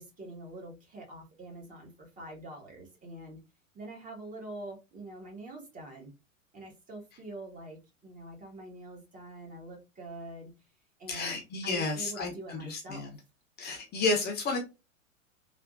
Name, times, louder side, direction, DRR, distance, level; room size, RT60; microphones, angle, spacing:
voice 1, 0.0-3.4 3.7-6.1 6.5-10.5 11.0-13.1, right 2 dB, 20° right, 0 dB, 1.3 m, -45 dB
voice 2, 11.1-13.2 13.6-14.6, left 3 dB, 25° left, 1 dB, 1.0 m, -31 dB
3.5 x 2.6 x 2.5 m, 0.26 s
figure-of-eight pair, 100°, 40 cm